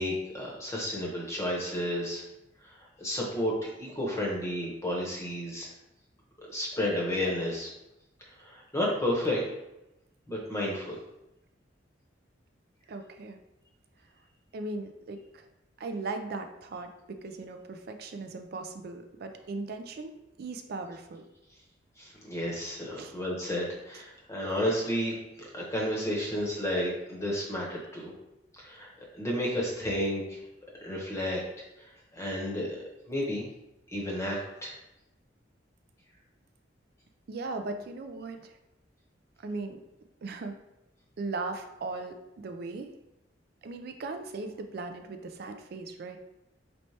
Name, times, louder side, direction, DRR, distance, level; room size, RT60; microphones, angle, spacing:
voice 1, 0.0-2.2 2.6-5.7 6.4-7.7 8.4-9.5 10.3-11.0 22.0-28.1 28.6-28.9 29.1-30.4 30.8-31.4 31.8-33.4 33.9-34.7, left 1 dB, 15° left, -3 dB, 0.8 m, -32 dB
voice 2, 12.9-13.4 14.5-15.4 15.8-20.1 20.4-21.2 22.9-23.1 37.3-38.5 39.4-39.8 40.2-40.5 41.2-42.9 43.6-46.2, right 3 dB, 55° right, 6 dB, 0.4 m, -38 dB
4.2 x 3.2 x 2.8 m, 0.90 s
head